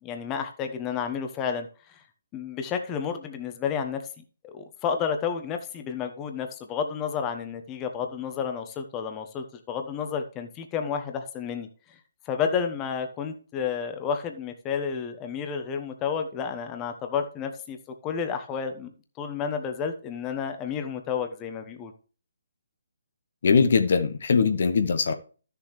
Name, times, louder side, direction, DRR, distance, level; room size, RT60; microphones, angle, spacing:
voice 1, 0.0-2.0 2.3-4.0 4.4-11.7 12.3-18.9 19.2-21.9, left 7 dB, 20° left, 1.1 m, -31 dB
voice 2, 23.4-25.1, left 5 dB, 60° left, 1.1 m, -21 dB
13.0 x 6.9 x 3.2 m
figure-of-eight pair, 140°, 0 cm